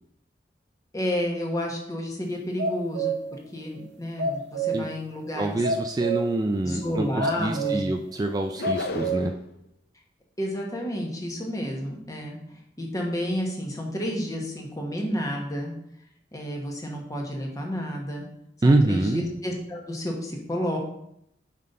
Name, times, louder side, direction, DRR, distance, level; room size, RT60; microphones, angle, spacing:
voice 1, 0.9-3.1 3.5-5.6 6.6-7.9 10.4-15.7 16.3-18.2 18.6-20.8, equal, 20° left, 0 dB, 1.2 m, -31 dB
sound 1, 2.6-3.3 4.2-4.9 5.6-6.3 6.8-6.9 7.2-7.9 8.3-9.2, right 3 dB, 80° right, 0.8 m, -27 dB
voice 2, 5.4-9.3 18.6-19.2, right 2 dB, 20° right, 5 dB, 0.3 m, -25 dB
sound 2, 8.6-9.5, left 3 dB, 60° left, 0.6 m, -33 dB
5.3 x 4.0 x 5.4 m, 0.76 s
head